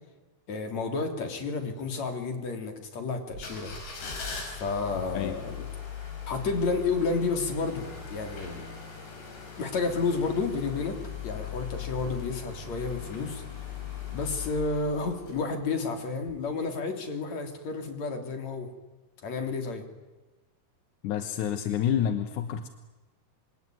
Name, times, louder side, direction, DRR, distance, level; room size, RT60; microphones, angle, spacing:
voice 1, 0.5-3.7 4.4-5.7 6.3-8.6 9.6-13.4 14.1-18.7 19.2-19.8, left 4 dB, 45° left, 5 dB, 4.1 m, -31 dB
sound 1, 3.3-15.8 16.2-16.3, left 7 dB, 90° left, 7.8 m, -39 dB
voice 2, 21.0-22.7, left 9 dB, 65° left, 8 dB, 2.1 m, -28 dB
27.0 x 23.0 x 9.4 m, 1.2 s
omnidirectional pair, 4.7 m